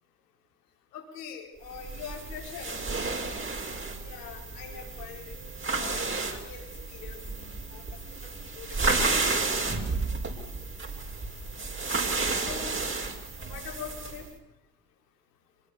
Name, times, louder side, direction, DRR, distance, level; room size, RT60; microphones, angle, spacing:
voice 1, 0.9-2.7 4.0-5.4 5.6-7.2 7.7-7.8 8.2-9.3 12.3-12.8 13.5-14.3, left 7 dB, 80° left, 1 dB, 4.9 m, -43 dB
sound 1, 1.7-14.3, right 3 dB, 25° right, 5.0 m, -32 dB
26.0 x 20.0 x 7.1 m, 0.95 s
hypercardioid pair, 60°, 47 cm